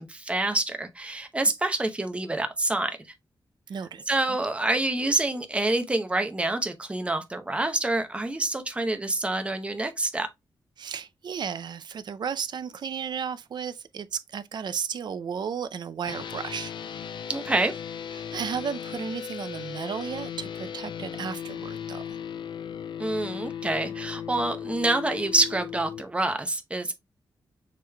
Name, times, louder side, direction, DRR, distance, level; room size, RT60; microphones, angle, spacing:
voice 1, 0.0-3.0 4.1-10.3 17.3-17.7 23.0-27.0, right 2 dB, 15° right, 0.7 m, -27 dB
voice 2, 3.7-4.0 4.3-4.4 10.8-16.7 18.1-22.0, right 7 dB, 60° right, 0.4 m, -34 dB
sound 1, 16.0-26.0, left 8 dB, 70° left, 0.4 m, -37 dB
6.6 x 3.1 x 2.2 m
wide cardioid pair, 120°, 8 cm